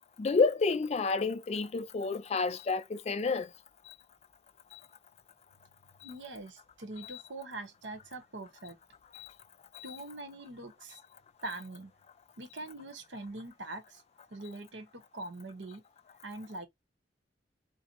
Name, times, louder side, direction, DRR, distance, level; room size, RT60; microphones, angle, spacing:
voice 1, 0.2-3.5 3.9-4.0 4.7-4.8 6.0-6.1 7.0-7.2 9.1-9.3 9.7-10.0, left 4 dB, 35° left, 0.3 m, -30 dB
voice 2, 6.0-8.8 9.8-11.0 11.4-11.9 12.4-14.0 14.3-15.8 16.2-16.7, right 2 dB, 85° right, 0.9 m, -43 dB
4.0 x 2.0 x 2.9 m
head